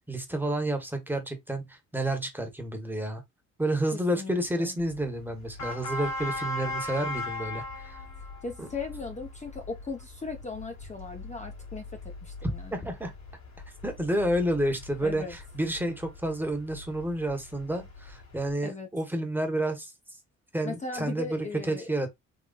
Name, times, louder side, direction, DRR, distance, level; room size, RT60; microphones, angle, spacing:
voice 1, 0.1-3.2 3.6-8.0 8.6-8.7 12.7-13.1 13.8-19.9 20.5-22.1, right 1 dB, 5° right, 1.2 m, -30 dB
voice 2, 3.9-4.8 8.4-12.9 15.0-15.4 18.6-18.9 20.6-21.9, left 4 dB, 25° left, 0.8 m, -38 dB
sound 1, 4.8-18.5, left 2 dB, 60° left, 2.2 m, -40 dB
3.9 x 3.0 x 2.4 m
cardioid pair, 90°, 30 cm